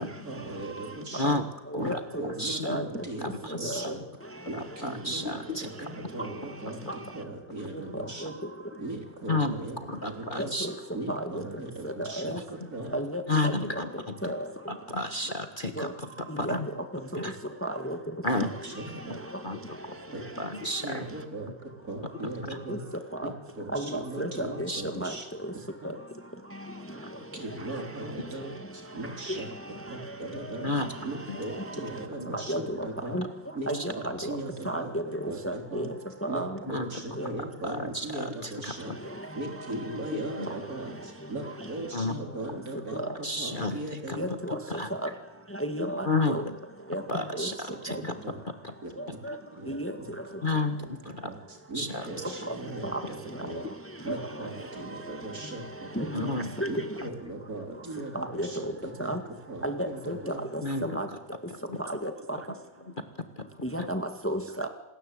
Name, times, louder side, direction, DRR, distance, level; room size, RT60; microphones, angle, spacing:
voice 1, 0.0-1.4 1.8-4.0 4.4-8.4 8.8-10.6 10.9-13.0 18.3-19.2 20.1-20.2 20.8-22.9 23.2-25.3 25.8-25.9 27.3-29.5 29.9-30.7 31.0-33.2 33.5-34.9 35.2-35.9 36.3-44.3 47.7-48.4 48.8-49.2 49.5-50.6 51.0-53.7 54.0-56.3 56.6-60.4, right 2 dB, 50° right, 3 dB, 4.2 m, -39 dB
voice 2, 1.8-2.3 2.6-3.0 3.5-3.9 6.2-6.3 7.9-8.3 10.4-10.7 11.1-11.4 11.8-12.4 12.9-13.8 14.2-14.4 15.8-15.9 16.3-16.6 17.1-17.2 17.6-18.0 19.3-19.4 20.9-21.0 22.7-22.8 23.1-23.3 23.7-24.7 25.0-25.1 29.3-29.4 31.5-31.6 32.3-32.9 33.1-33.2 33.7-34.4 34.6-35.9 36.2-36.5 37.2-37.3 40.5-40.6 44.2-44.6 45.0-45.1 45.5-46.4 46.9-47.5 47.9-48.0 49.0-49.4 49.7-49.9 52.2-52.5 52.8-53.0 53.5-53.6 54.1-54.3 55.9-56.1 56.6-56.7 58.1-58.7 59.0-59.2 59.6-61.1 61.8-62.4 63.6-64.7, right 1 dB, 5° left, 7 dB, 2.0 m, -33 dB
voice 3, 2.4-2.9 3.2-3.9 4.8-5.9 9.3-10.7 13.3-13.9 14.2-14.3 14.7-16.7 17.1-17.3 18.2-18.5 19.4-19.6 20.4-21.0 24.7-24.8 30.6-30.9 33.7-33.8 34.2-34.3 36.7-36.9 37.6-39.0 40.4-40.5 41.9-42.2 43.2-43.8 44.1-44.2 44.7-44.9 45.8-46.5 47.1-48.1 48.6-48.7 50.4-50.8 51.1-51.3 51.8-52.1 56.1-56.5 60.6-61.0 61.7-61.8 63.4-63.5 63.8-63.9, left 2 dB, 30° left, 7 dB, 1.7 m, -31 dB
27.5 x 21.0 x 8.4 m, 0.92 s
omnidirectional pair, 1.9 m